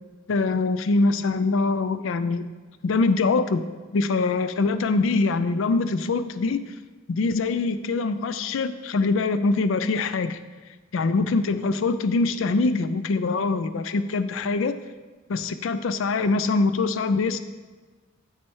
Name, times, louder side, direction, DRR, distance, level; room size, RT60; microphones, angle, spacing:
voice 1, 0.3-2.5 2.8-3.6 3.9-6.6 7.1-10.4 10.9-14.7 15.3-17.4, left 3 dB, 85° left, 12 dB, 0.4 m, -23 dB
7.5 x 6.2 x 4.5 m, 1.3 s
head